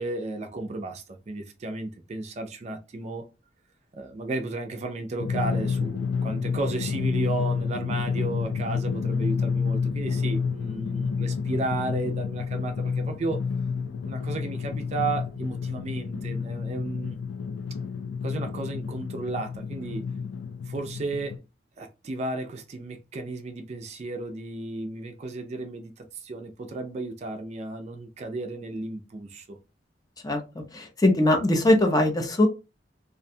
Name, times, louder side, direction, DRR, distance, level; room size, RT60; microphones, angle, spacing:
voice 1, 0.0-3.3 3.9-13.4 14.0-17.2 18.2-20.0 20.7-21.4 21.8-29.6, right 3 dB, 40° right, 0.4 m, -33 dB
Drum, 5.2-21.4, left 5 dB, 85° left, 0.3 m, -29 dB
voice 2, 30.2-32.5, left 1 dB, 20° left, 0.5 m, -21 dB
2.4 x 2.2 x 2.6 m
head